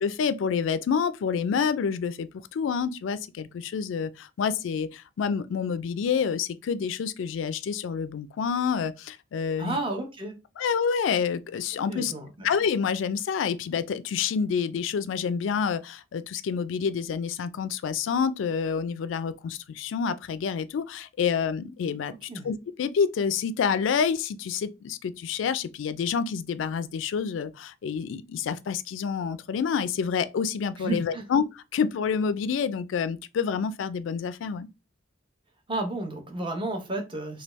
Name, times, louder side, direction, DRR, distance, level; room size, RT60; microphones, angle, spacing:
voice 1, 0.0-9.8 10.6-12.1 12.4-22.1 22.4-34.7, left 6 dB, 70° left, 0.3 m, -28 dB
voice 2, 9.6-10.4 11.9-12.5 22.3-22.5 30.8-31.2 35.7-37.4, right 2 dB, 25° right, 0.7 m, -32 dB
3.3 x 2.3 x 3.0 m
head